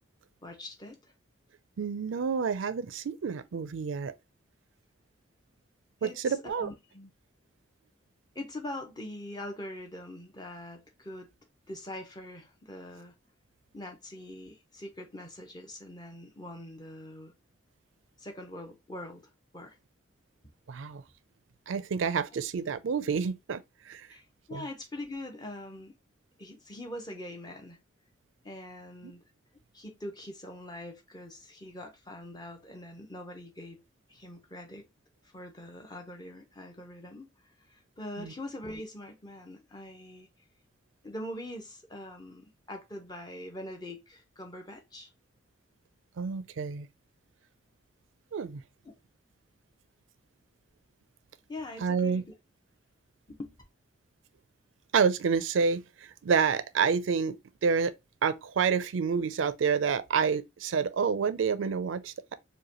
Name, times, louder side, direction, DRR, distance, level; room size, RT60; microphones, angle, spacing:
voice 1, 0.4-1.1 6.0-7.1 8.3-11.3 11.7-13.1 13.7-17.3 18.2-19.8 24.1-26.0 26.4-27.8 28.4-29.2 29.7-33.8 34.1-34.8 35.2-37.3 37.7-40.3 41.0-45.1 48.8-49.0 51.5-52.2 53.3-53.6, left 1 dB, 20° left, 0.8 m, -43 dB
voice 2, 1.8-4.1 6.0-6.7 20.7-21.0 21.7-24.1 24.5-24.6 29.0-29.1 38.2-38.3 46.2-46.9 48.3-48.6 51.8-52.2 54.9-57.9 58.2-62.4, right 6 dB, 85° right, 0.4 m, -29 dB
4.8 x 2.2 x 2.9 m
head